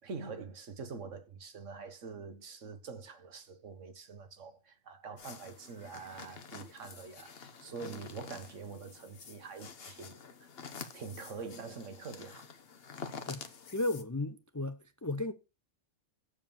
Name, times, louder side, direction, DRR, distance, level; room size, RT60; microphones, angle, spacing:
voice 1, 0.0-10.5 10.9-12.5, right 5 dB, 75° right, 1.5 m, -45 dB
sound 1, 5.2-14.0, left 6 dB, 55° left, 1.1 m, -48 dB
voice 2, 13.7-15.3, left 2 dB, 30° left, 0.3 m, -34 dB
7.3 x 4.8 x 7.0 m
omnidirectional pair, 1.3 m